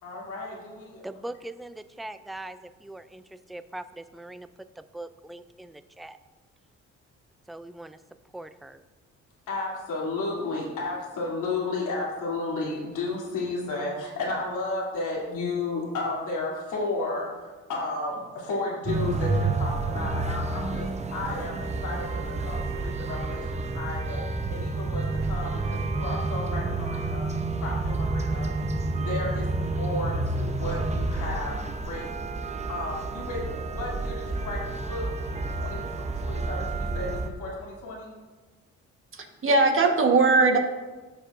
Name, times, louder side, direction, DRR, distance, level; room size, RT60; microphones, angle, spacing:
voice 1, 0.0-1.0 9.5-17.3 17.7-24.2 24.5-27.2 27.6-28.5 28.9-32.3 32.7-35.1 35.6-35.9 36.2-38.1, left 3 dB, 85° left, -4 dB, 2.9 m, -33 dB
voice 2, 1.0-3.2 3.5-4.5 4.8-6.2 7.5-8.0 8.3-8.8, right 1 dB, ahead, 11 dB, 0.3 m, -41 dB
sound 1, 18.9-37.3, right 3 dB, 20° right, 0.7 m, -29 dB
voice 3, 39.1-40.6, right 3 dB, 45° right, 3 dB, 1.4 m, -20 dB
14.0 x 6.5 x 2.6 m, 1.3 s
cardioid pair, 90°, 30 cm